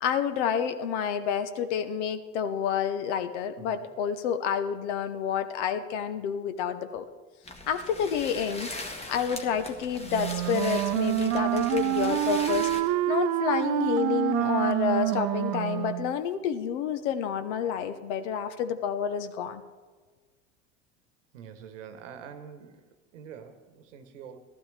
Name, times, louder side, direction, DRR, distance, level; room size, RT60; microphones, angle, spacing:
voice 1, 0.0-7.1 7.7-8.7 9.1-12.7 13.1-19.6, left 8 dB, 70° left, 10 dB, 1.0 m, -29 dB
sound 1, 7.4-12.8, left 2 dB, 15° left, 1.4 m, -40 dB
Wind instrument woodwind instrument, 10.1-16.1, right 15 dB, 45° right, 0.6 m, -27 dB
voice 2, 21.3-22.8 23.1-24.4, right 7 dB, 85° right, 9 dB, 1.1 m, -45 dB
15.0 x 12.5 x 3.3 m, 1.4 s
hypercardioid pair, 85°, 36 cm